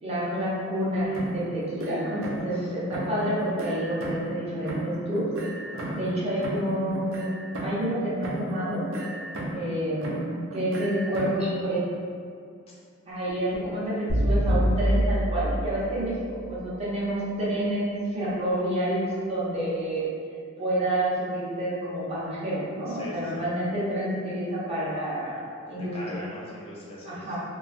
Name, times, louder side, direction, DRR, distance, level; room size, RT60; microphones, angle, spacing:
voice 1, 0.0-5.2 5.9-7.3 7.6-8.8 9.5-10.3 10.5-11.8 13.1-20.1 20.6-25.4 25.7-26.0 27.0-27.4, right 1 dB, 30° right, -9 dB, 0.7 m, -28 dB
sound 1, 1.1-2.6 2.9-4.4 4.7-8.0 8.2-9.7 10.0-11.5, right 1 dB, 75° right, 0.4 m, -34 dB
voice 2, 2.4-2.7 5.7-6.0 12.7-12.8 22.9-23.4 25.3-25.4 25.7-27.4, left 1 dB, 30° left, -6 dB, 0.4 m, -42 dB
sound 2, 14.1-16.3, equal, 85° left, 0.6 m, -25 dB
2.7 x 2.4 x 2.4 m, 2.3 s
head